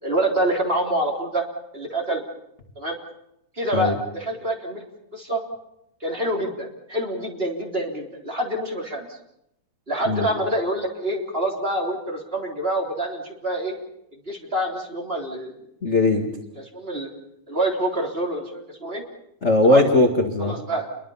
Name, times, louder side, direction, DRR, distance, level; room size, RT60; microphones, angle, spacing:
voice 1, 0.0-1.4 1.7-2.2 2.7-3.0 3.6-4.8 5.1-5.4 6.0-9.1 9.9-13.7 14.2-15.5 16.5-17.1 17.5-19.0 19.6-19.9 20.4-20.9, right 1 dB, 15° right, 0 dB, 3.5 m, -26 dB
voice 2, 15.8-16.3 19.4-20.6, left 2 dB, 45° left, 1 dB, 0.9 m, -19 dB
29.5 x 22.5 x 5.7 m, 0.80 s
omnidirectional pair, 4.5 m